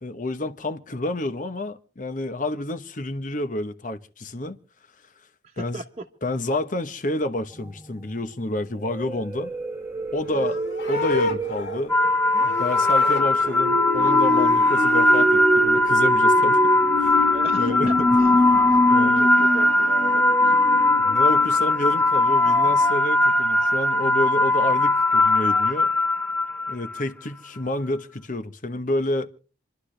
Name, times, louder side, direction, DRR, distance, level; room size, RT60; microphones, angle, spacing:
voice 1, 0.0-4.6 5.6-5.8 6.2-9.5 10.1-10.6 10.9-11.9 12.4-17.3 17.6-18.1 18.9-19.2 21.0-25.9 26.7-29.3, left 1 dB, 45° left, 1.0 m, -29 dB
voice 2, 5.4-6.0 10.3-10.5 17.3-18.4 18.7-20.7, right 2 dB, 35° right, 1.2 m, -38 dB
sound 1, 7.6-7.8 8.9-24.8 25.3-25.4 25.5-25.6, left 1 dB, 15° right, 1.6 m, -27 dB
Livestock farm animals working animals, 10.2-13.7 13.9-15.3 19.0-20.2, left 4 dB, 60° left, 2.4 m, -32 dB
sound 2, 11.9-27.0, left 2 dB, 10° left, 0.8 m, -20 dB
28.0 x 12.0 x 3.3 m
head